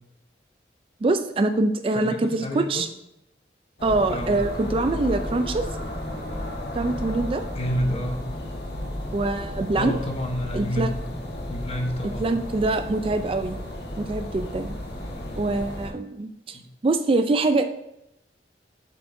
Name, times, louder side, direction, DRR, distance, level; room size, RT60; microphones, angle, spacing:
voice 1, 1.0-2.9 3.8-5.6 6.7-7.4 9.1-9.9 10.5-10.9 12.2-13.6 14.0-14.7 15.4-17.6, right 2 dB, 30° right, 9 dB, 0.3 m, -24 dB
voice 2, 1.9-2.8 4.1-4.3 7.5-8.2 9.7-11.0 11.5-12.3 15.0-15.6 16.5-16.7, equal, 35° left, 4 dB, 0.9 m, -29 dB
sound 1, 3.8-15.9, left 1 dB, 65° left, 1.4 m, -33 dB
7.6 x 7.2 x 2.6 m, 0.84 s
head